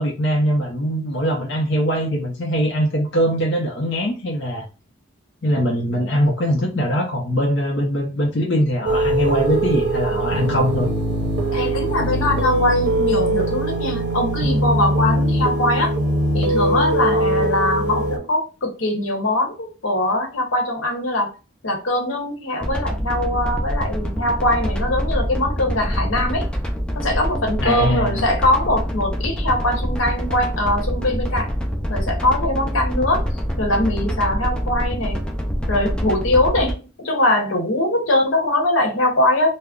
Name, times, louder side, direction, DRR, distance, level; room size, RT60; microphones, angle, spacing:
voice 1, 0.0-4.6 5.4-10.9 27.6-28.3, equal, 60° left, -2 dB, 0.6 m, -21 dB
sound 1, 8.8-18.2, right 1 dB, 60° right, 0.6 m, -21 dB
voice 2, 11.5-15.9 16.3-21.3 21.6-26.5 26.9-31.5 31.9-33.2 33.6-35.2 35.7-39.5, left 1 dB, 85° left, 1 dB, 0.9 m, -22 dB
sound 2, 22.6-36.7, equal, 5° left, 0.3 m, -25 dB
2.4 x 2.0 x 3.6 m, 0.32 s
head